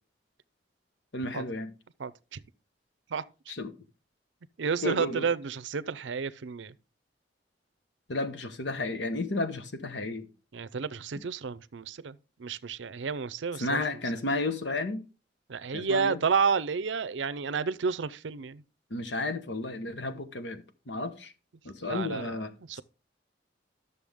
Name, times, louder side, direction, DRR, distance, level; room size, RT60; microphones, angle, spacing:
voice 1, 1.1-1.7 3.5-3.7 4.8-5.3 8.1-10.3 11.1-11.2 13.6-15.0 15.7-16.2 18.9-21.3 21.6-22.8, left 2 dB, 75° left, 1.1 m, -32 dB
voice 2, 2.0-2.4 3.1-3.2 4.6-6.7 10.5-13.8 15.5-18.6 21.8-22.3 22.7-22.8, right 5 dB, 85° right, 0.5 m, -31 dB
11.5 x 6.8 x 3.5 m
head